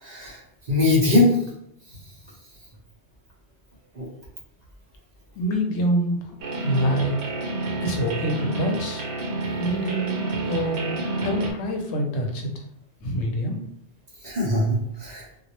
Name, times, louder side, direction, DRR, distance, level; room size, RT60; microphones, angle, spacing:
voice 1, 0.0-0.4 0.7-1.4 4.0-4.1 14.2-15.2, left 2 dB, 45° right, -5 dB, 0.6 m, -21 dB
voice 2, 5.4-6.4 6.6-7.1 7.8-9.0 9.6-11.0 11.2-12.5 13.0-13.6, equal, 80° left, 2 dB, 0.9 m, -26 dB
sound 1, 6.4-11.5, right 2 dB, 75° right, 0.8 m, -29 dB
2.2 x 2.0 x 2.8 m, 0.76 s
omnidirectional pair, 1.2 m